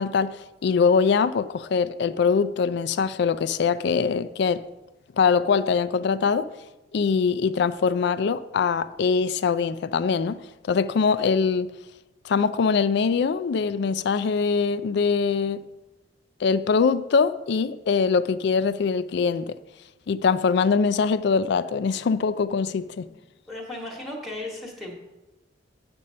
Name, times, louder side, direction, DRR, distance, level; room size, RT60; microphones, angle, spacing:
voice 1, 0.0-4.6 5.2-6.5 6.9-10.4 10.6-11.7 12.2-15.6 16.4-19.6 20.1-23.1, left 5 dB, 60° left, 0.4 m, -23 dB
voice 2, 23.5-24.9, left 1 dB, ahead, 1.2 m, -35 dB
8.6 x 5.2 x 5.4 m
head